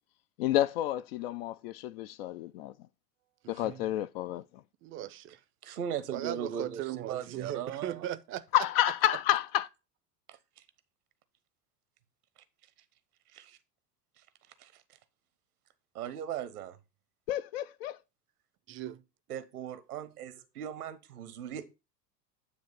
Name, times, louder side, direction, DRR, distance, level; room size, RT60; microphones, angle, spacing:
voice 1, 0.4-2.7 3.5-4.4 8.5-9.7 17.3-18.0, left 13 dB, 40° left, 0.4 m, -29 dB
voice 2, 3.4-3.8 4.8-5.4 6.1-8.4 18.7-19.0, right 12 dB, 25° right, 0.6 m, -38 dB
voice 3, 5.6-8.0 10.3-10.4 13.3-13.6 14.6-14.7 15.9-16.8 19.3-21.7, right 9 dB, 70° right, 1.0 m, -38 dB
9.4 x 3.1 x 6.5 m
figure-of-eight pair, 75°, 47 cm